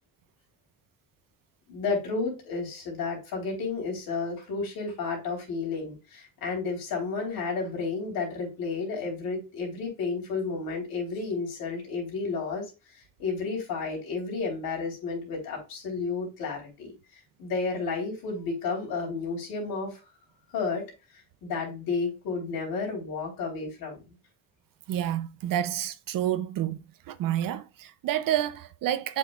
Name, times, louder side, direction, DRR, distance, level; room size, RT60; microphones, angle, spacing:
voice 1, 1.7-12.7 13.2-17.0 17.4-20.0 20.5-20.9 21.4-24.2, left 4 dB, 85° left, 3.6 m, -32 dB
voice 2, 24.9-26.8 27.1-29.2, right 11 dB, 65° right, 0.6 m, -29 dB
7.7 x 5.3 x 2.4 m
cardioid pair, 95°, 35 cm